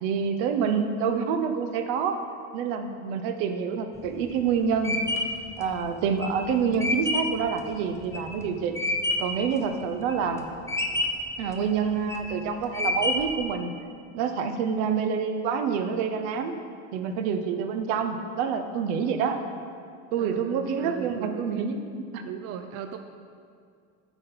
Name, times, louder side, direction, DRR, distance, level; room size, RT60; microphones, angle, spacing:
voice 1, 0.0-2.2 2.5-5.0 5.6-8.8 9.2-10.5 11.4-13.7 14.1-16.5 16.9-19.4 20.1-21.8 22.1-22.2, right 6 dB, 65° right, 7 dB, 0.9 m, -27 dB
sound 1, 4.0-9.4 9.8-10.4 10.7-11.3 11.8-12.3 12.7-13.4, left 2 dB, 10° left, 0.6 m, -28 dB
voice 2, 20.2-21.6 22.2-23.0, right 9 dB, 45° right, 7 dB, 0.4 m, -38 dB
8.9 x 4.2 x 5.7 m, 2.2 s
supercardioid pair, 115°, 36 cm